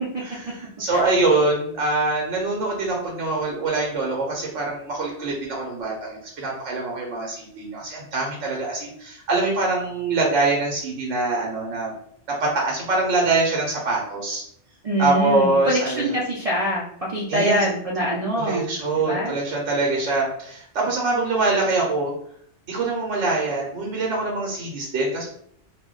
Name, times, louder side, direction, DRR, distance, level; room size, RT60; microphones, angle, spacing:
voice 1, 0.2-11.9 12.4-14.4 15.0-16.1 17.3-17.6 18.3-22.1 22.7-25.3, right 3 dB, 80° right, -2 dB, 0.9 m, -24 dB
voice 2, 14.8-18.7 19.0-19.3, equal, 55° right, -5 dB, 0.4 m, -24 dB
2.1 x 2.1 x 3.6 m, 0.64 s
omnidirectional pair, 1.2 m